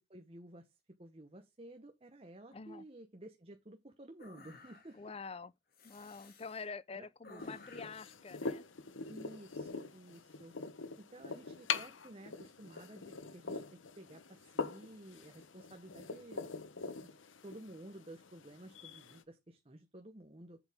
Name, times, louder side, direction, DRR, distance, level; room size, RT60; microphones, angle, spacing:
voice 1, 0.1-5.0 6.9-7.6 9.1-10.5 11.0-13.6 14.0-17.1 17.4-20.6, right 1 dB, 30° right, 1.1 m, -53 dB
voice 2, 2.5-2.8 4.9-5.5 5.8-8.6, left 4 dB, 30° left, 0.5 m, -46 dB
sound 1, 4.2-5.1 5.7-6.7 7.2-8.1, left 3 dB, 50° left, 2.4 m, -57 dB
sound 2, 7.4-19.2, left 5 dB, 90° left, 1.0 m, -43 dB
8.1 x 7.7 x 3.6 m
head